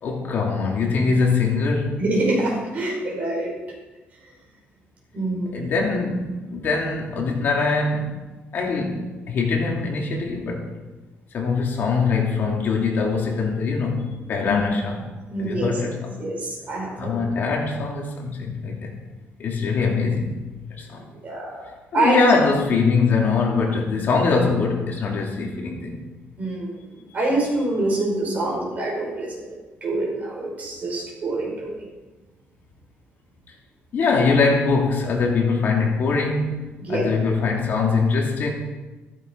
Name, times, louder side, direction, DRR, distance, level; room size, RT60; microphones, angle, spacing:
voice 1, 0.0-2.0 5.5-8.1 8.5-10.7 11.3-15.0 15.4-16.2 17.0-18.9 19.4-20.4 20.8-21.1 21.9-26.1 33.9-36.5 36.9-38.5, left 4 dB, 50° left, -1 dB, 2.7 m, -22 dB
voice 2, 2.0-3.5 5.1-5.7 14.4-14.6 14.9-15.8 16.2-17.1 21.2-22.2 26.4-26.8 27.1-31.9 36.8-37.0, right 2 dB, 35° right, -2 dB, 5.3 m, -26 dB
14.5 x 14.0 x 4.7 m, 1.2 s
cardioid pair, 165°, 4 cm